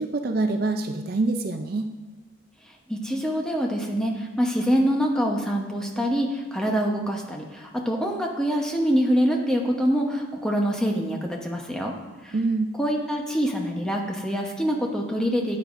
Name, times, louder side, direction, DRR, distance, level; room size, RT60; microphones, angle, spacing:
voice 1, 0.0-1.9 12.3-12.7, right 3 dB, 45° right, 6 dB, 0.4 m, -25 dB
voice 2, 2.9-11.9 12.2-12.3 12.8-15.6, equal, 5° left, 0 dB, 0.9 m, -25 dB
13.0 x 8.9 x 2.6 m, 1.3 s
head